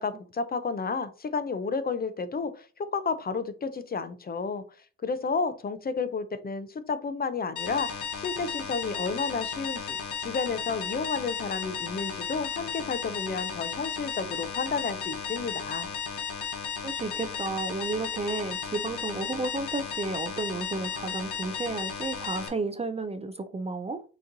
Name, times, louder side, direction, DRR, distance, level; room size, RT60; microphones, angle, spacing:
voice 1, 0.0-4.6 5.0-7.9 8.2-15.9, left 4 dB, 30° left, 0.6 m, -31 dB
sound 1, 7.6-22.5, left 6 dB, 80° left, 1.1 m, -34 dB
voice 2, 16.8-24.0, right 3 dB, 20° right, 0.4 m, -32 dB
6.3 x 3.0 x 2.6 m
cardioid pair, 90°, 30 cm